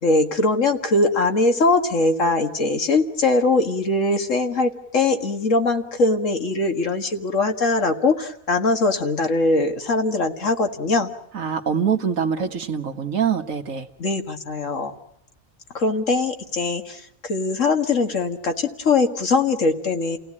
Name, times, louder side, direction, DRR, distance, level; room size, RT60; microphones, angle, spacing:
voice 1, 0.0-11.1 14.0-14.9 15.7-20.2, left 3 dB, 65° left, 5 dB, 2.1 m, -21 dB
voice 2, 11.3-13.9, right 7 dB, 70° right, 7 dB, 1.8 m, -24 dB
29.5 x 17.0 x 8.6 m, 0.77 s
omnidirectional pair, 1.4 m